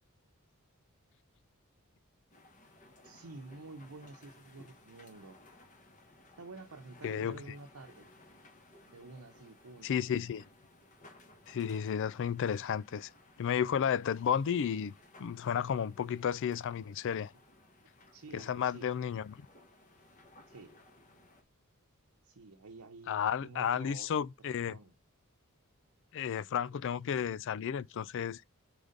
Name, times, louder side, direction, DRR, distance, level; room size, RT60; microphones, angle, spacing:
sound 1, 2.3-21.4, left 2 dB, 35° left, 1.3 m, -60 dB
voice 1, 3.0-5.4 6.4-8.1 8.9-9.9 18.1-19.1 20.5-20.7 22.2-24.9, right 3 dB, 80° right, 0.8 m, -50 dB
voice 2, 7.0-7.4 9.8-10.4 11.5-13.1 13.4-14.9 15.2-17.3 18.3-19.5 23.1-24.8 26.1-28.4, left 8 dB, 55° left, 0.3 m, -32 dB
4.8 x 4.0 x 5.1 m
head